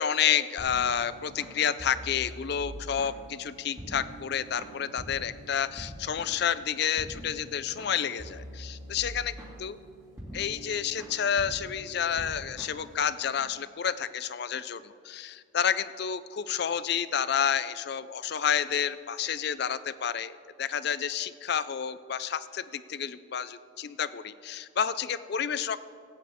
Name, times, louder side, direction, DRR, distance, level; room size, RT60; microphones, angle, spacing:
voice 1, 0.0-9.3 9.6-9.7 10.3-25.8, left 8 dB, 55° left, 15 dB, 0.4 m, -30 dB
sound 1, 0.6-13.4, right 1 dB, 15° right, 2.2 m, -45 dB
16.5 x 9.0 x 3.6 m, 2.2 s
head